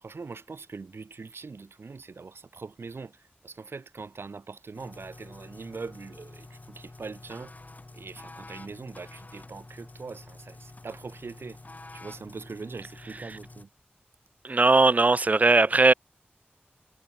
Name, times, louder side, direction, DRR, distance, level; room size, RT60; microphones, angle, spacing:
voice 1, 0.0-7.5 7.9-11.6 11.9-13.7, right 4 dB, 90° right, 2.5 m, -42 dB
sound 1, 4.7-13.7, left 2 dB, 45° left, 1.6 m, -48 dB
voice 2, 14.4-15.9, right 3 dB, 40° right, 0.3 m, -19 dB
wide cardioid pair, 45°, 4 cm